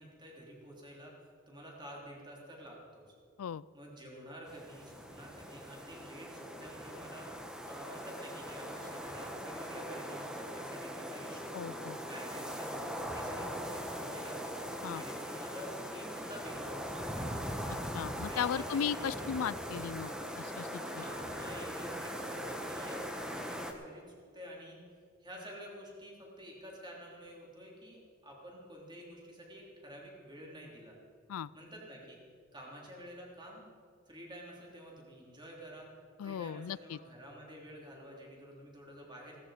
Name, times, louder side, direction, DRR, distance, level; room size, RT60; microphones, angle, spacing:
voice 1, 0.0-3.0 3.7-14.5 14.9-17.4 18.3-19.3 20.8-24.8 25.2-31.0 31.5-32.2 32.5-33.6 34.1-35.9 36.2-39.4, equal, 20° right, -2 dB, 3.3 m, -49 dB
sound 1, 4.5-23.7, equal, 5° right, 1.1 m, -41 dB
voice 2, 11.5-12.0 14.8-15.0 17.7-21.0 31.3-31.5 36.2-37.0, left 8 dB, 70° left, 21 dB, 0.4 m, -37 dB
17.0 x 14.0 x 5.0 m, 2.1 s
head